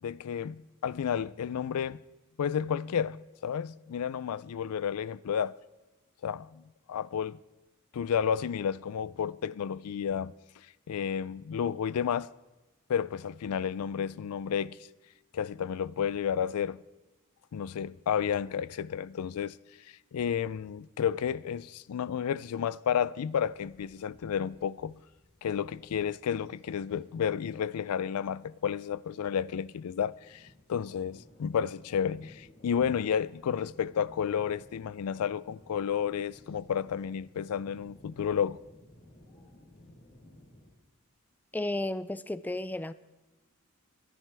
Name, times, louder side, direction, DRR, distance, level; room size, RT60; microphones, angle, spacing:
voice 1, 0.0-2.0 2.4-5.5 6.2-6.6 6.9-7.4 7.9-10.3 10.9-12.3 12.9-14.8 15.3-16.8 17.5-19.6 19.9-25.0 25.4-38.6, left 8 dB, 85° left, 0.4 m, -31 dB
sound 1, 23.2-40.7, left 1 dB, 50° left, 4.2 m, -58 dB
voice 2, 41.5-42.9, left 1 dB, 10° left, 0.3 m, -33 dB
24.0 x 10.5 x 3.4 m
head